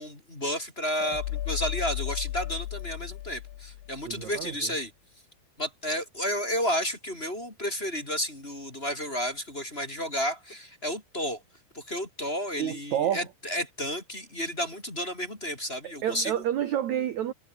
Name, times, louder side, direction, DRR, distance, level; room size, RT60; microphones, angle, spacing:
voice 1, 0.0-4.9 5.6-11.4 11.7-16.4, equal, 15° left, 3.3 m, -32 dB
sound 1, 1.0-4.2, left 13 dB, 75° left, 3.8 m, -34 dB
voice 2, 4.0-4.7 12.6-13.2 15.8-17.3, right 10 dB, 70° right, 1.7 m, -29 dB
omnidirectional pair, 5.2 m